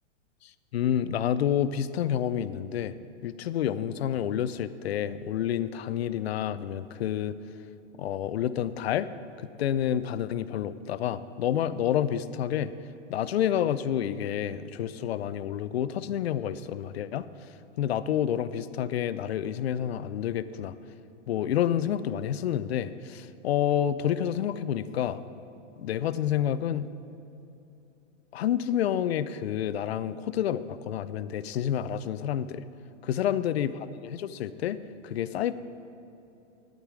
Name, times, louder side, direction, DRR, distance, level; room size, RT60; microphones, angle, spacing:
voice 1, 0.4-3.0 3.2-7.3 8.0-9.1 9.4-12.7 13.1-17.3 17.8-20.7 21.3-25.2 25.8-26.9 28.3-32.7 33.0-33.7 34.0-34.8 35.0-35.5, left 10 dB, 55° left, 15 dB, 0.5 m, -29 dB
11.5 x 10.5 x 4.8 m, 2.9 s
supercardioid pair, 175°, 38 cm